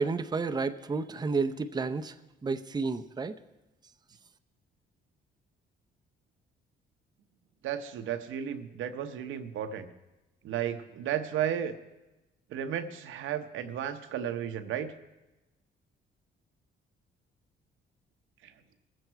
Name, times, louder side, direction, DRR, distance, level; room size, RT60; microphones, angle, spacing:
voice 1, 0.0-2.1 2.4-3.3, right 4 dB, 20° right, 7 dB, 0.6 m, -31 dB
voice 2, 7.6-9.9 10.4-11.7 12.5-14.9 18.4-18.5, right 9 dB, 80° right, 8 dB, 0.9 m, -33 dB
20.0 x 7.8 x 4.6 m, 1.0 s
cardioid pair, 90°, 20 cm